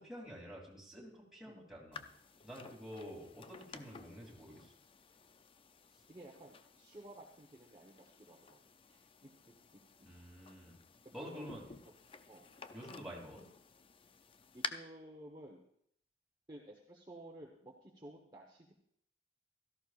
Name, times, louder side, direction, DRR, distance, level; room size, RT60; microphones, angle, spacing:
voice 1, 0.0-2.0 2.4-4.7 10.0-10.8 11.1-11.6 12.7-13.4, equal, ahead, -4 dB, 2.9 m, -49 dB
sound 1, 1.9-14.7, left 6 dB, 30° left, 0.5 m, -52 dB
voice 2, 6.1-8.6 8.9-9.3 9.7-9.8 11.0-11.7 12.2-12.5 14.5-15.6 16.5-18.7, right 1 dB, 25° right, -2 dB, 1.2 m, -54 dB
17.0 x 13.5 x 2.5 m, 0.69 s
head